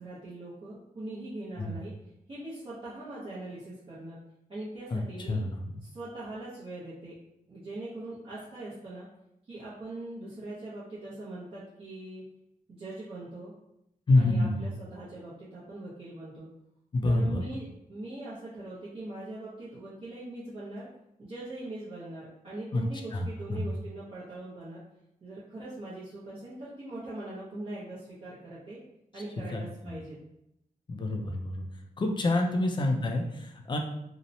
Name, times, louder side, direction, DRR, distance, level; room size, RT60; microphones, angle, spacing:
voice 1, 0.0-1.9 2.3-4.2 4.5-5.4 5.8-7.2 7.5-9.1 9.5-12.2 12.7-13.5 14.2-16.5 17.0-20.9 21.2-24.8 25.2-28.8 29.1-30.2 32.4-32.5, right 2 dB, 40° right, -11 dB, 0.6 m, -41 dB
voice 2, 5.3-5.8 14.1-14.6 16.9-17.4 22.7-22.8 23.1-23.7 29.5-30.0 30.9-31.6 32.0-33.8, left 2 dB, 35° left, 2 dB, 0.3 m, -27 dB
2.8 x 2.0 x 2.5 m, 0.81 s
wide cardioid pair, 175°, 14 cm